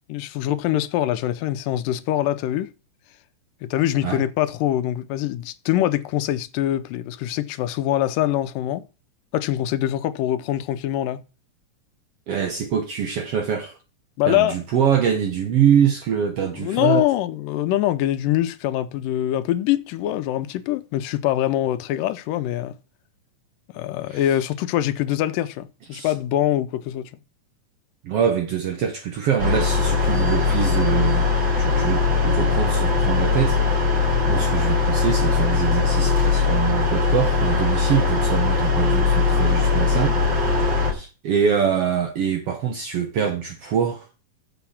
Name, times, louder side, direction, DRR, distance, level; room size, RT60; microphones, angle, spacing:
voice 1, 0.1-2.7 3.6-8.8 9.3-11.2 14.2-14.6 16.4-22.7 23.7-27.1, left 13 dB, 85° left, 2.4 m, -24 dB
voice 2, 12.3-13.7 14.3-17.1 24.1-24.2 25.9-26.1 28.0-31.3 31.5-34.0 34.3-40.1 40.9-44.1, right 8 dB, 65° right, 1.6 m, -24 dB
sound 1, 29.4-40.9, left 5 dB, 35° right, 3.4 m, -20 dB
7.1 x 7.0 x 7.1 m
omnidirectional pair, 3.8 m